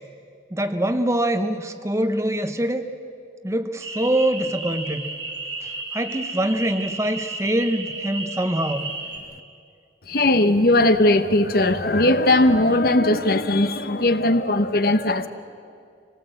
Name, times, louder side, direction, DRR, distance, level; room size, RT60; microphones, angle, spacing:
voice 1, 0.5-2.8 3.4-5.1 5.6-8.9, right 1 dB, 15° right, 9 dB, 0.8 m, -24 dB
sound 1, 3.8-9.2, right 3 dB, 85° right, 3.2 m, -33 dB
voice 2, 10.1-15.3, left 1 dB, 55° left, 10 dB, 0.9 m, -18 dB
25.5 x 18.0 x 7.9 m, 2.3 s
head